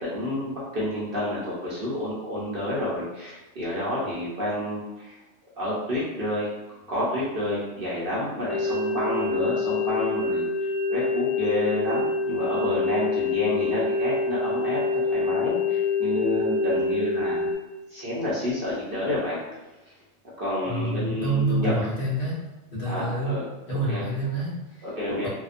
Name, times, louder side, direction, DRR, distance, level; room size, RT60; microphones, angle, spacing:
voice 1, 0.0-5.1 5.6-6.5 6.9-10.5 10.9-14.8 15.1-17.5 17.9-19.4 20.4-21.7 22.8-23.4 23.9-24.0 24.8-25.3, left 1 dB, 55° right, -7 dB, 0.7 m, -29 dB
sound 1, 8.5-17.5, left 3 dB, 35° left, 0.3 m, -26 dB
voice 2, 20.7-22.4 22.7-23.4 23.7-24.9 25.2-25.3, right 2 dB, 55° left, -7 dB, 1.0 m, -27 dB
2.7 x 2.0 x 2.4 m, 1.1 s
omnidirectional pair, 1.4 m